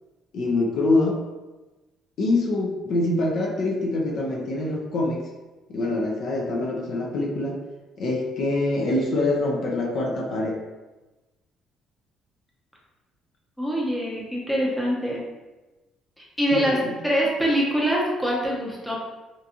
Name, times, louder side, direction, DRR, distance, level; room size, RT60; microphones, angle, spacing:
voice 1, 0.3-1.2 2.2-5.3 5.7-7.6 8.0-10.6 16.5-16.9, left 2 dB, 55° left, 0 dB, 0.4 m, -25 dB
voice 2, 13.6-15.2 16.2-19.0, equal, ahead, -5 dB, 0.6 m, -24 dB
2.5 x 2.3 x 2.7 m, 1.1 s
cardioid pair, 130°, 0 cm